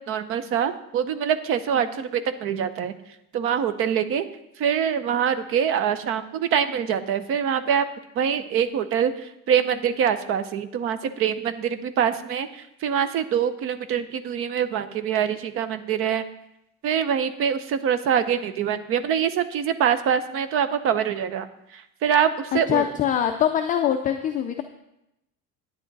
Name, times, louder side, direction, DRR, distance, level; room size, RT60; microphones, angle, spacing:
voice 1, 0.1-3.0 3.3-4.3 4.6-7.8 8.2-9.1 9.5-12.5 12.8-16.2 16.8-21.5 22.0-22.9, right 8 dB, 40° right, 12 dB, 0.6 m, -24 dB
voice 2, 22.7-24.6, left 10 dB, 25° left, 5 dB, 0.4 m, -23 dB
11.0 x 9.3 x 4.0 m, 0.85 s
cardioid pair, 175°, 33 cm